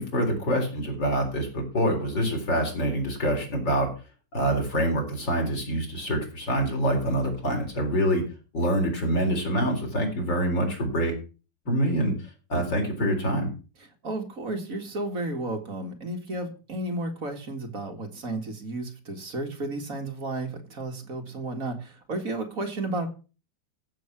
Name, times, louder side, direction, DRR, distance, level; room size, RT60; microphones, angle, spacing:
voice 1, 0.0-3.9 4.3-8.2 8.5-11.1 11.7-12.1 12.5-13.5, right 1 dB, 85° left, 1 dB, 4.8 m, -25 dB
voice 2, 14.0-23.1, right 2 dB, 50° right, 3 dB, 2.4 m, -33 dB
14.5 x 7.4 x 6.0 m, 0.34 s
omnidirectional pair, 2.0 m